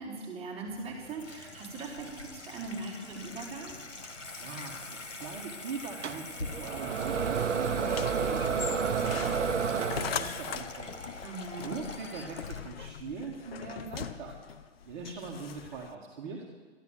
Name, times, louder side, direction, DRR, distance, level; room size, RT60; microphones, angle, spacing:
voice 1, 0.0-3.7 11.2-11.8, right 3 dB, 15° right, -7 dB, 4.5 m, -40 dB
Water tap faucet / Sink (filling or washing), 0.7-12.9, left 3 dB, 90° left, 1.6 m, -44 dB
voice 2, 4.4-11.0 11.6-14.3 14.9-16.5, right 5 dB, 40° right, -1 dB, 1.9 m, -41 dB
sound 1, 6.0-10.5, right 6 dB, 75° right, 1.0 m, -30 dB
sound 2, 7.8-15.9, left 8 dB, 55° left, 0.8 m, -41 dB
13.0 x 12.0 x 7.6 m, 1.5 s
figure-of-eight pair, 130°, 36 cm